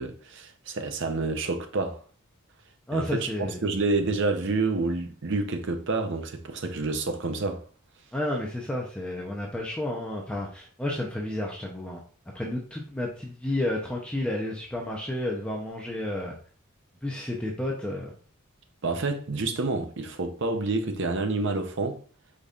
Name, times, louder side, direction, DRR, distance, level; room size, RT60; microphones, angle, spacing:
voice 1, 0.0-2.0 2.9-7.6 18.8-22.0, right 3 dB, 55° right, 0.7 m, -28 dB
voice 2, 2.9-3.6 8.1-12.0 12.3-16.4 17.0-18.1, left 1 dB, 5° left, 0.6 m, -31 dB
5.2 x 4.0 x 2.4 m
head